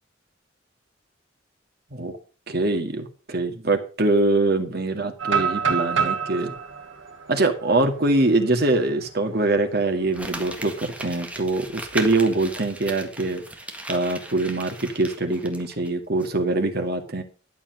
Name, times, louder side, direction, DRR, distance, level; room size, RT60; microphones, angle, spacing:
voice 1, 2.5-6.5 7.3-13.4 13.9-17.2, right 2 dB, 55° right, 6 dB, 2.0 m, -23 dB
sound 1, 5.2-9.1 9.5-9.6 10.1-10.4 11.8-12.6, right 6 dB, 85° right, 1.7 m, -28 dB
Crumpling crinkling, 10.1-15.9 16.2-16.3, right 1 dB, 5° right, 1.7 m, -37 dB
11.5 x 7.1 x 6.5 m, 0.36 s
head